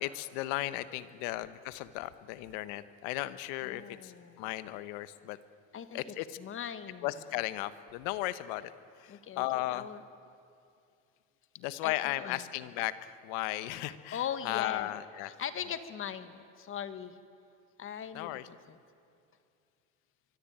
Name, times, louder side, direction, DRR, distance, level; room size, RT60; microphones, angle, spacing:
voice 1, 0.0-4.1 4.4-5.4 5.9-6.4 7.0-8.7 9.0-9.9 11.6-12.9 13.2-15.3 18.1-18.5, left 16 dB, 75° left, 13 dB, 1.3 m, -35 dB
voice 2, 3.6-4.4 5.7-6.0 6.4-7.2 9.1-10.0 11.8-12.4 14.1-14.9 15.2-17.2 17.8-18.8, left 8 dB, 40° left, 10 dB, 1.6 m, -40 dB
24.0 x 23.5 x 8.8 m, 2.5 s
supercardioid pair, 110°, 34 cm